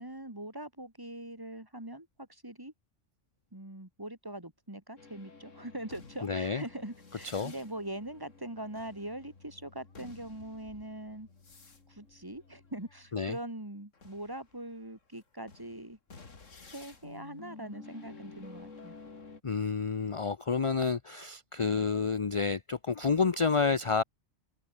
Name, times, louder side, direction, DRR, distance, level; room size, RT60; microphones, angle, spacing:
voice 1, 0.0-2.7 3.5-11.3 11.9-16.0 16.7-19.0, right 1 dB, 15° right, 2.6 m, -42 dB
sound 1, 5.0-13.4 13.9-19.4, left 4 dB, 75° left, 2.9 m, -52 dB
voice 2, 6.2-6.6 7.3-7.5 13.1-13.4 19.4-24.0, left 5 dB, 30° left, 0.7 m, -29 dB
omnidirectional pair, 1.3 m